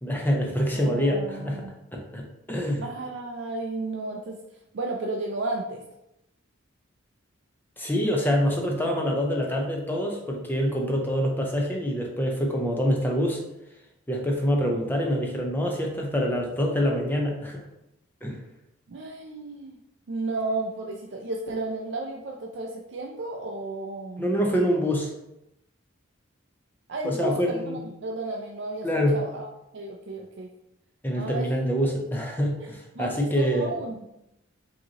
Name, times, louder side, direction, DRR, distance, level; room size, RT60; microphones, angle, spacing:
voice 1, 0.0-1.7 1.9-2.9 7.8-13.4 14.1-17.6 18.2-18.4 24.2-25.1 27.0-27.8 28.8-29.2 31.0-33.7, equal, 10° left, 0 dB, 0.5 m, -26 dB
voice 2, 0.7-1.7 2.8-4.4 4.7-5.8 18.9-19.8 20.1-24.3 26.9-28.9 29.1-29.5 29.7-30.5 31.2-31.5 32.6-32.7 33.0-34.0, right 2 dB, 55° right, 0 dB, 0.4 m, -33 dB
5.1 x 2.8 x 2.8 m, 0.87 s
head